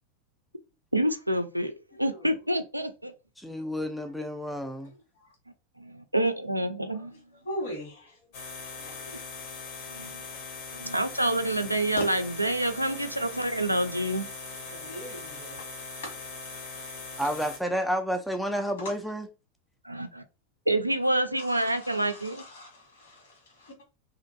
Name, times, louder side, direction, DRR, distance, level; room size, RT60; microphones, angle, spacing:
voice 1, 0.9-3.1 5.8-7.1 9.9-10.2 10.7-14.3 19.8-20.2 20.7-22.4, right 1 dB, 85° right, 0.3 m, -27 dB
voice 2, 3.4-4.9 17.2-19.3, equal, ahead, 0.3 m, -30 dB
voice 3, 4.8-5.3 6.9-7.2 7.4-8.3 8.7-9.0 9.8-9.9 12.0-12.1 14.4-16.1 18.8-18.9 21.4-23.7, equal, 60° left, 1.4 m, -41 dB
sound 1, 8.3-17.6, left 4 dB, 45° left, 0.8 m, -40 dB
2.6 x 2.5 x 2.5 m
figure-of-eight pair, 90°, 0 cm